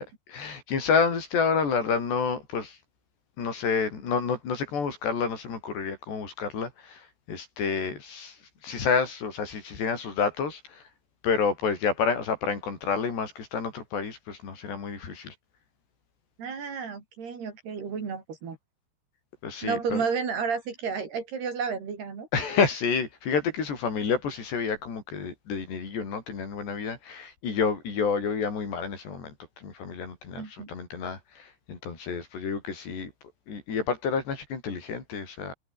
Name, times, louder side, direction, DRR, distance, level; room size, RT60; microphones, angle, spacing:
voice 1, 0.3-2.8 3.4-8.4 8.6-10.8 11.2-15.3 19.4-20.0 22.3-33.1 33.5-35.5, left 5 dB, 75° left, 7.7 m, -29 dB
voice 2, 16.4-18.6 19.6-22.3 30.4-30.7, right 6 dB, 65° right, 6.8 m, -31 dB
omnidirectional pair, 4.9 m